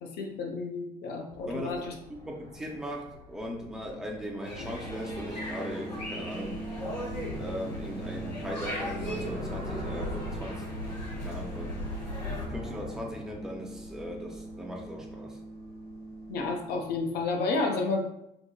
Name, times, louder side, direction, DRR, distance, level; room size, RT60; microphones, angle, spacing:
voice 1, 0.0-1.9 16.3-18.0, left 3 dB, 50° left, 2 dB, 0.6 m, -31 dB
sound 1, 1.3-17.4, left 2 dB, 70° left, 1.3 m, -46 dB
voice 2, 1.5-1.9 2.2-6.6 7.4-10.7 11.2-11.8 12.5-15.4, equal, 5° right, -1 dB, 0.6 m, -39 dB
sound 2, 4.4-12.4, equal, 90° left, 0.6 m, -37 dB
sound 3, 4.9-16.8, right 2 dB, 40° right, 0.7 m, -42 dB
4.3 x 2.1 x 2.3 m, 0.82 s
figure-of-eight pair, 55°, 21 cm